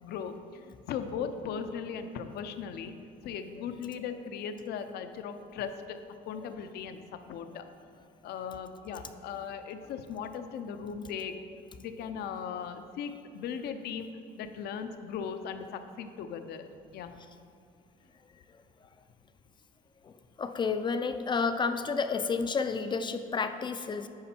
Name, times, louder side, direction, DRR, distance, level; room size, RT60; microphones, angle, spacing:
voice 1, 0.0-2.9 3.2-6.0 6.3-7.6 8.2-11.4 11.8-14.1 14.4-16.7 16.9-17.1, left 7 dB, 70° left, 9 dB, 0.6 m, -38 dB
voice 2, 20.0-24.1, left 5 dB, 25° left, 9 dB, 0.4 m, -31 dB
9.6 x 5.1 x 4.3 m, 2.5 s
cardioid pair, 110°, 17 cm